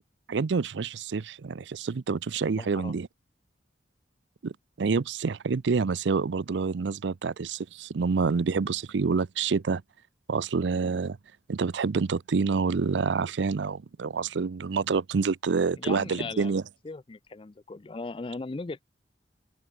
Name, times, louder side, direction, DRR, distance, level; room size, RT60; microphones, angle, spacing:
voice 1, 0.3-3.1 4.4-9.8 10.3-11.2 11.5-16.6, right 5 dB, 85° right, 0.5 m, -27 dB
voice 2, 2.5-2.9 15.8-18.8, left 3 dB, 30° left, 0.4 m, -38 dB
open air
head